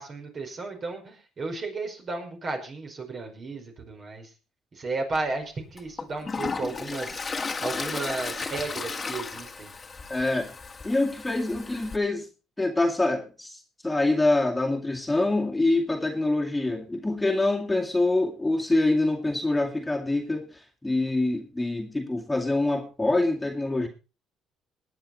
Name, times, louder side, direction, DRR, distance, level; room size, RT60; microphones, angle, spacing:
voice 1, 0.0-4.3 4.7-7.2 7.6-9.7 10.1-10.3, right 3 dB, 40° right, 4 dB, 5.0 m, -34 dB
Toilet flush, 5.1-5.2 5.8-12.0, left 4 dB, 30° left, 1.7 m, -34 dB
voice 2, 10.1-10.5 10.8-12.3 12.6-23.9, left 2 dB, 10° left, 0 dB, 2.3 m, -25 dB
19.5 x 9.5 x 4.2 m, 0.32 s
cardioid pair, 90°, 0 cm